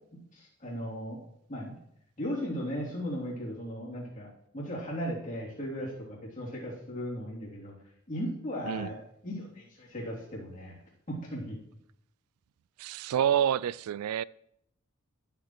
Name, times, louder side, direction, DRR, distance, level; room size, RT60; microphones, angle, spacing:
voice 1, 0.3-1.2 1.5-1.7 2.2-4.3 4.5-7.7 8.1-9.0 9.2-10.7 11.1-11.6, equal, 35° left, 3.1 m, -36 dB
voice 2, 12.8-14.2, right 9 dB, 85° right, 0.3 m, -28 dB
13.0 x 7.5 x 3.1 m
head